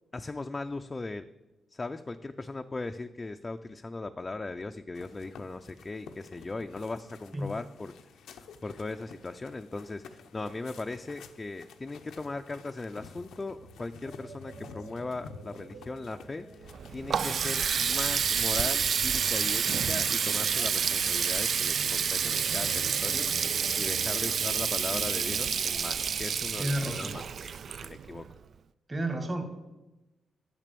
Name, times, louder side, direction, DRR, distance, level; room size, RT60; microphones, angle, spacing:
voice 1, 0.1-1.2 1.7-7.9 8.4-27.2 27.8-28.2, left 3 dB, 30° left, 6 dB, 0.5 m, -38 dB
sound 1, 4.9-23.0, left 5 dB, 85° left, 0.7 m, -52 dB
sound 2, 13.1-27.3, right 3 dB, 90° right, 1.4 m, -47 dB
Water tap faucet, 16.7-28.3, right 7 dB, 65° right, 0.3 m, -29 dB
voice 2, 26.6-27.2 28.9-29.4, right 1 dB, 35° right, 6 dB, 1.8 m, -31 dB
9.2 x 6.0 x 6.8 m, 1.0 s
cardioid pair, 70°, 0 cm